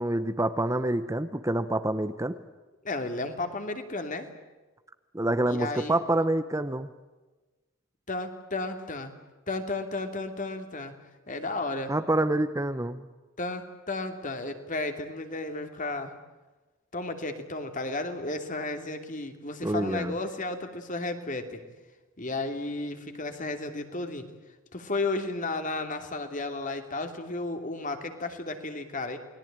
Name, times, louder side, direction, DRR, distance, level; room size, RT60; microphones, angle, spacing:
voice 1, 0.0-2.4 5.1-6.9 11.9-13.1 19.6-20.2, right 1 dB, 15° right, 10 dB, 0.9 m, -27 dB
voice 2, 2.8-4.3 5.5-6.0 8.1-9.1 9.5-11.0 11.3-11.9 13.4-16.1 16.9-21.6 22.2-24.3 24.7-29.2, left 2 dB, 40° left, 6 dB, 2.9 m, -33 dB
29.0 x 20.5 x 8.9 m, 1.2 s
head